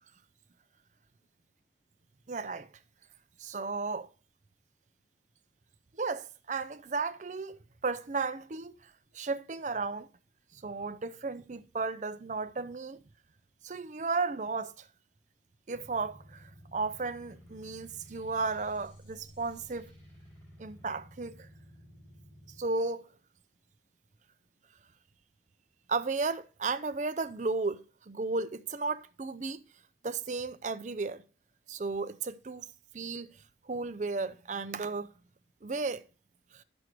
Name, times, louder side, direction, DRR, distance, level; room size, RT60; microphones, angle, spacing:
voice 1, 2.3-2.7 3.4-4.1 6.0-10.1 10.5-13.0 13.6-14.9 15.7-19.9 20.6-21.5 22.6-23.0 25.9-29.6 30.0-31.2 31.7-32.7 32.9-35.1 35.6-36.0 36.5-36.6, right 4 dB, 40° right, 0.5 m, -34 dB
sound 1, 15.7-22.6, equal, 10° left, 4.8 m, -54 dB
9.4 x 6.2 x 4.5 m
head